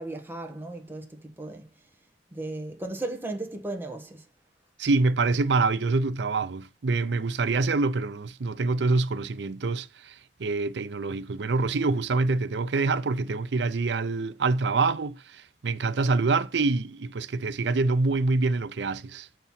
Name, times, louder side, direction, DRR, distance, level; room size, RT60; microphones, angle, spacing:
voice 1, 0.0-1.6 2.3-4.2, right 2 dB, 15° right, 1.5 m, -35 dB
voice 2, 4.8-10.1 10.4-19.3, right 3 dB, 75° right, 0.6 m, -26 dB
6.8 x 4.6 x 5.7 m
head